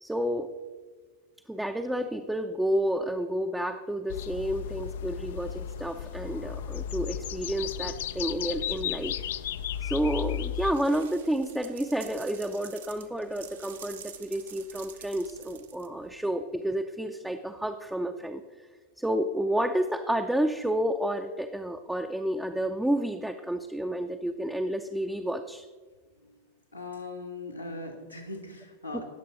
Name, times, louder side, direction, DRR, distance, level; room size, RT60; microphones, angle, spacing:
voice 1, 0.0-0.5 1.5-9.1 9.8-18.4 19.0-25.7 28.9-29.0, right 1 dB, 5° right, 4 dB, 0.5 m, -30 dB
sound 1, 4.1-10.7, left 10 dB, 55° left, 0.3 m, -34 dB
sound 2, 10.6-16.1, right 8 dB, 65° right, 0.8 m, -48 dB
voice 2, 26.7-29.0, left 2 dB, 90° left, 0 dB, 1.7 m, -40 dB
18.5 x 6.9 x 3.9 m, 1.4 s
figure-of-eight pair, 90°, 0 cm